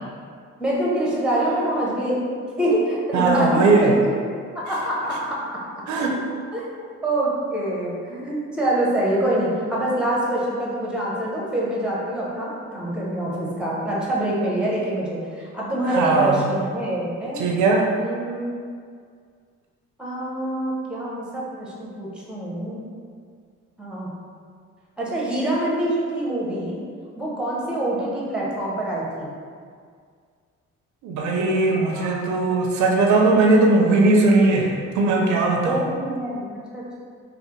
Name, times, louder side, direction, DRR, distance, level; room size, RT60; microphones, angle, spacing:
voice 1, 0.6-5.6 6.5-6.7 7.0-17.4 17.9-18.5 20.0-22.8 23.8-24.1 25.0-26.8 27.2-29.3 31.9-32.2 35.6-37.0, right 1 dB, 5° right, -5 dB, 0.7 m, -25 dB
voice 2, 3.1-3.9 5.9-6.1 15.8-16.5 17.4-17.9 31.0-35.9, right 3 dB, 75° right, 0 dB, 0.5 m, -19 dB
3.2 x 2.0 x 3.0 m, 2.1 s
cardioid pair, 90°, 30 cm